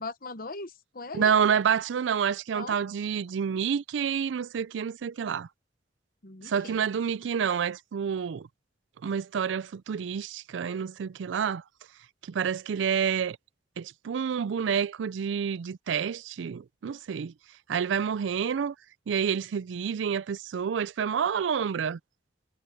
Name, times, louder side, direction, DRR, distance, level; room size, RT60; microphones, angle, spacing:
voice 1, 0.0-1.4 2.5-2.8 6.2-6.8, left 3 dB, 50° left, 1.0 m, -39 dB
voice 2, 1.1-5.5 6.4-8.5 9.0-11.6 12.3-13.4 13.8-17.3 17.7-18.7 19.1-22.0, right 7 dB, 85° right, 0.4 m, -28 dB
head